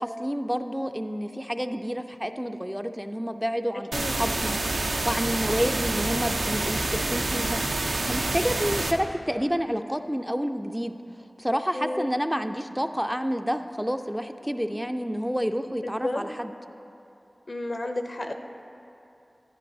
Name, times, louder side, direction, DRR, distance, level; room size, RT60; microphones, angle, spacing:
voice 1, 0.0-10.9 11.4-16.5, equal, 5° right, 7 dB, 0.3 m, -29 dB
sound 1, 3.9-8.9, right 2 dB, 85° right, 0.4 m, -27 dB
voice 2, 11.7-12.1 15.8-16.2 17.5-18.3, left 1 dB, 60° left, 5 dB, 0.5 m, -31 dB
10.5 x 9.9 x 2.6 m, 2.8 s
wide cardioid pair, 45°, 0 cm